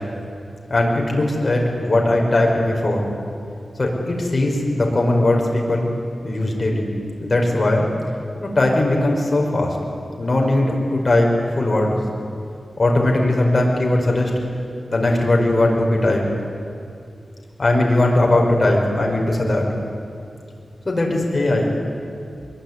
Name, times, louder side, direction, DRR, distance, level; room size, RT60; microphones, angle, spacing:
voice 1, 0.7-3.1 3.8-5.9 6.2-6.9 7.2-7.9 8.4-9.8 10.2-12.0 12.8-14.3 14.9-16.2 17.6-19.6 20.9-21.7, left 1 dB, 40° left, 0 dB, 5.3 m, -19 dB
23.5 x 22.0 x 9.9 m, 2.5 s
wide cardioid pair, 110°, 0 cm